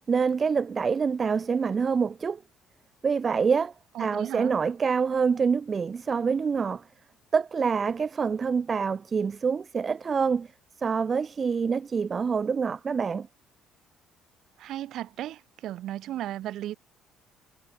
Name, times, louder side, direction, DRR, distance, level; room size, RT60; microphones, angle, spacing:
voice 1, 0.1-2.4 3.0-3.7 4.0-6.9 7.3-10.5 10.8-13.3, right 5 dB, 35° right, 0.8 m, -26 dB
voice 2, 3.9-4.5 14.6-16.8, right 13 dB, 55° right, 4.4 m, -35 dB
figure-of-eight pair, 50°, 0 cm